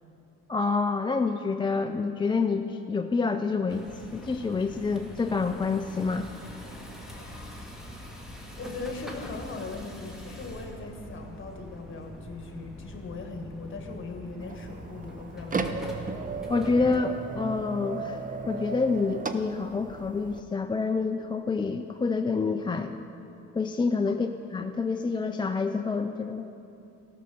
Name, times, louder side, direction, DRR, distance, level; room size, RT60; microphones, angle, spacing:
voice 1, 0.5-3.8 4.1-6.3 16.5-18.2 18.5-23.0 23.5-26.5, left 4 dB, 15° left, 6 dB, 0.4 m, -27 dB
sound 1, 3.7-17.0, equal, ahead, 1.7 m, -43 dB
voice 2, 8.6-16.2 24.1-24.2, left 3 dB, 40° left, 3 dB, 1.6 m, -39 dB
sound 2, 14.4-20.4, right 4 dB, 25° right, 0.6 m, -35 dB
13.5 x 6.4 x 6.8 m, 2.8 s
cardioid pair, 90°, 30 cm